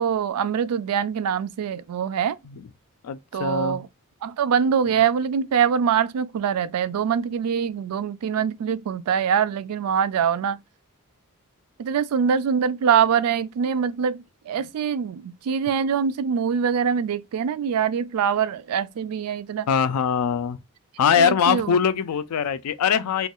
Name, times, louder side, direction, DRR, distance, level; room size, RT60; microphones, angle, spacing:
voice 1, 0.0-2.4 3.3-3.9 4.2-10.6 11.8-19.7 21.2-21.8, right 7 dB, 80° right, 0.3 m, -24 dB
voice 2, 3.0-3.8 19.7-20.6 21.0-23.3, left 7 dB, 85° left, 0.4 m, -22 dB
3.0 x 2.2 x 2.9 m
head